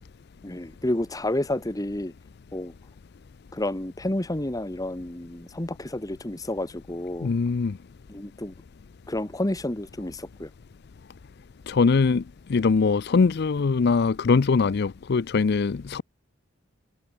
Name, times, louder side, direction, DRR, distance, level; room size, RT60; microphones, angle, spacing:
voice 1, 0.4-2.1 2.5-2.7 3.5-7.3 8.1-8.5 9.1-10.5, left 1 dB, 20° left, 1.1 m, -30 dB
voice 2, 7.2-7.7 11.7-12.2 12.5-16.0, left 4 dB, 55° left, 0.5 m, -22 dB
head